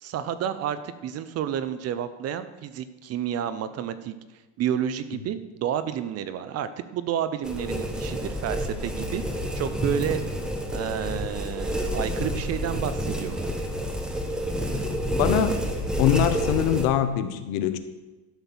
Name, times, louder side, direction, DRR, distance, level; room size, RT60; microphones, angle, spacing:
voice 1, 0.0-4.1 4.6-9.2 9.5-10.2 10.7-13.5, right 9 dB, 35° right, 13 dB, 0.6 m, -30 dB
sound 1, 7.4-16.8, equal, ahead, 0.9 m, -29 dB
voice 2, 15.2-15.6 16.0-17.8, left 10 dB, 70° left, 10 dB, 1.2 m, -23 dB
12.0 x 6.0 x 7.0 m, 1.2 s
cardioid pair, 155°, 45 cm